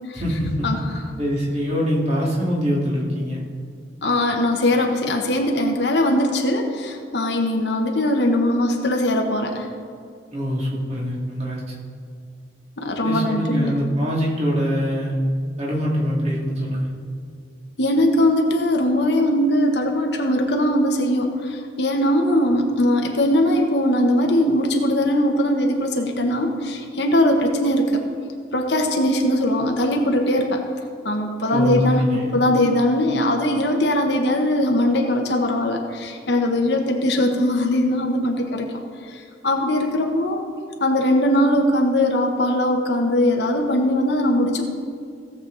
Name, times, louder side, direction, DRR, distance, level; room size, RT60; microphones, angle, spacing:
voice 1, 0.1-0.7 1.2-3.4 10.3-11.7 13.0-15.2 15.6-16.9 31.5-32.3, equal, 35° right, -4 dB, 2.5 m, -23 dB
voice 2, 4.0-9.7 12.8-13.7 17.8-28.0 28.5-30.6 31.0-38.7 39.1-40.4 40.8-44.7, left 1 dB, 65° left, 2 dB, 1.2 m, -20 dB
16.5 x 7.4 x 4.0 m, 2.3 s
head